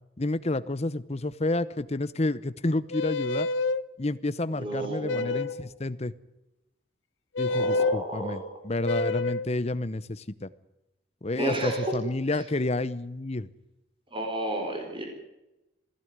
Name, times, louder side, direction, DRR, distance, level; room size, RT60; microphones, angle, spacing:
voice 1, 0.2-3.5 4.0-6.1 7.4-10.5 11.2-13.5, left 2 dB, 35° left, 15 dB, 0.9 m, -30 dB
sound 1, 2.9-3.8 5.1-5.7 7.3-8.0 8.8-9.5, left 3 dB, 80° left, 0.8 m, -27 dB
voice 2, 4.5-5.5 7.5-8.4 11.4-12.0 14.1-15.0, right 1 dB, 30° right, 3 dB, 4.5 m, -32 dB
18.5 x 16.0 x 9.6 m, 0.97 s
head